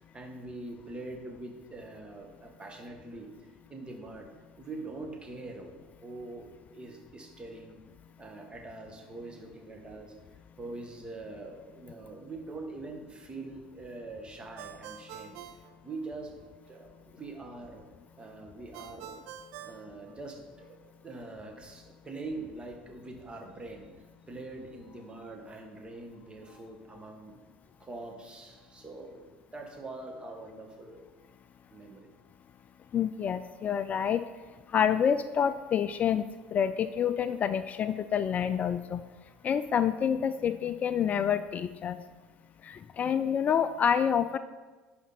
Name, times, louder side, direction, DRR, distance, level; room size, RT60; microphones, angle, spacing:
voice 1, 0.1-4.3 4.6-6.5 6.7-7.8 8.2-10.1 10.6-16.3 16.7-17.8 18.2-19.2 19.6-23.9 24.3-27.3 27.8-31.1 31.7-32.1, right 2 dB, 25° right, 3 dB, 1.5 m, -43 dB
Ringtone, 14.6-16.5 18.7-20.7, right 9 dB, 65° right, 0.5 m, -47 dB
voice 2, 32.9-34.2 34.7-36.2 36.5-39.0 39.4-42.0 42.6-44.4, left 8 dB, 35° left, 12 dB, 0.3 m, -28 dB
11.0 x 5.1 x 4.2 m, 1.3 s
hypercardioid pair, 75°, 4 cm